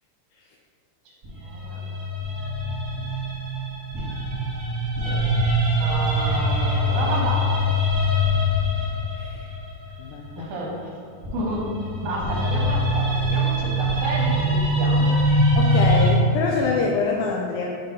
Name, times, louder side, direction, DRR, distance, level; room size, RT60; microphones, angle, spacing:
sound 1, 1.2-10.4 11.2-16.1, equal, 45° right, 1.3 m, -23 dB
voice 1, 1.4-2.0 2.9-3.0 5.0-5.2 5.8-7.7 10.4-10.7 11.3-11.6 12.0-15.1, right 2 dB, 70° right, -3 dB, 2.4 m, -30 dB
voice 2, 9.1-9.5 10.0-10.5 15.6-17.7, left 4 dB, 80° left, -1 dB, 1.9 m, -25 dB
6.6 x 3.1 x 5.3 m, 2.3 s
omnidirectional pair, 3.7 m